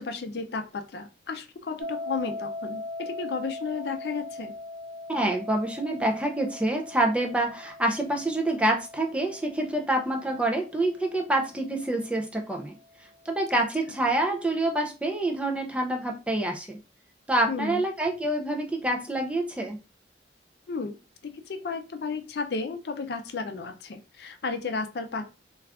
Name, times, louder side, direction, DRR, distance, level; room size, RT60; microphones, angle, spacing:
voice 1, 0.0-4.5 13.5-13.7 17.5-17.8 20.7-21.0 21.2-25.3, left 4 dB, 65° left, 7 dB, 0.4 m, -33 dB
sound 1, 1.8-12.7, left 2 dB, 80° right, 0.5 m, -41 dB
voice 2, 5.1-16.8 17.3-19.8, right 1 dB, 5° right, 2 dB, 0.4 m, -27 dB
2.4 x 2.3 x 3.4 m, 0.30 s
head